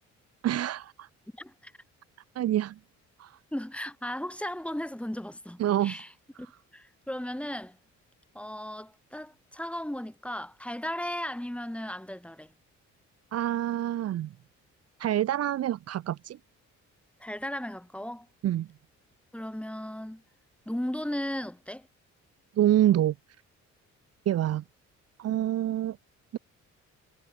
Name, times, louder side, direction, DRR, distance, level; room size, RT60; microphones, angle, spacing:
voice 1, 0.4-1.1 2.4-2.7 3.2-3.3 5.6-6.0 13.3-14.3 15.0-16.4 18.4-18.7 22.6-23.1 24.3-24.6 25.2-26.0 26.3-26.4, right 12 dB, 55° right, 0.6 m, -26 dB
voice 2, 1.4-1.7 3.5-6.1 6.4-6.5 6.7-7.8 8.3-12.5 17.2-18.3 19.3-20.2 20.7-21.9, left 1 dB, 5° left, 5.6 m, -36 dB
cardioid pair, 90°, 30 cm